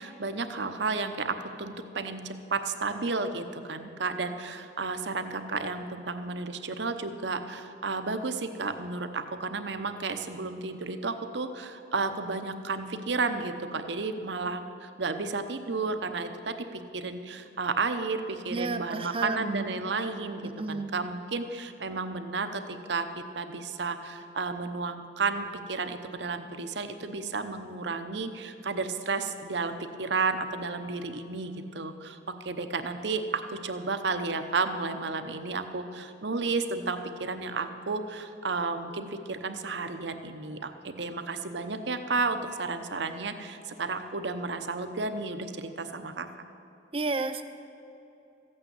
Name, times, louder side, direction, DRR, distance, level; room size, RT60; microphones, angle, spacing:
voice 1, 0.0-23.1 23.4-46.3, right 4 dB, 65° right, 8 dB, 0.9 m, -32 dB
voice 2, 18.5-19.6 20.6-20.9 46.9-47.4, right 3 dB, 30° right, 10 dB, 0.6 m, -31 dB
14.5 x 8.8 x 8.1 m, 2.8 s
head